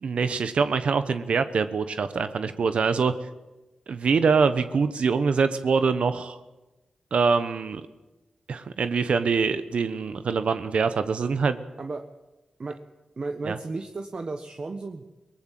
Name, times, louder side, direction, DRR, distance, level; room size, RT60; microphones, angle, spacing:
voice 1, 0.0-3.1 3.9-6.4 7.1-7.8 8.5-11.6 13.5-13.6, right 5 dB, 70° right, 11 dB, 1.1 m, -24 dB
voice 2, 13.2-15.0, right 3 dB, 50° right, 5 dB, 1.4 m, -33 dB
22.0 x 19.5 x 7.6 m, 1.1 s
cardioid pair, 65°, 2 cm